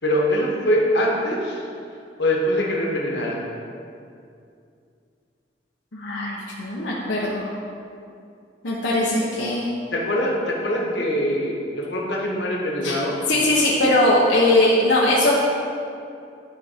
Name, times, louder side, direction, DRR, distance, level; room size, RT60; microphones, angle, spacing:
voice 1, 0.0-1.6 2.2-3.4 9.9-13.2, equal, 70° left, -3 dB, 1.5 m, -23 dB
voice 2, 5.9-7.5 8.6-9.7 12.8-13.0 13.3-15.3, left 1 dB, 90° left, -5 dB, 1.1 m, -20 dB
11.5 x 4.2 x 5.1 m, 2.5 s
head